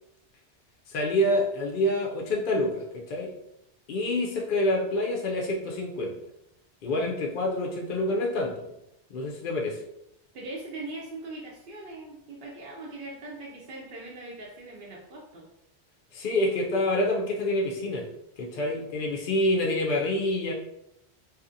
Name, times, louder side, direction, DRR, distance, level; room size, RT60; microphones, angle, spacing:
voice 1, 0.9-3.3 3.9-6.1 6.8-8.6 9.1-9.8 16.1-18.1 18.4-20.5, left 1 dB, 60° left, -1 dB, 0.6 m, -27 dB
voice 2, 10.3-15.5, right 2 dB, 60° right, -3 dB, 0.6 m, -40 dB
2.7 x 2.4 x 2.5 m, 0.81 s
omnidirectional pair, 1.1 m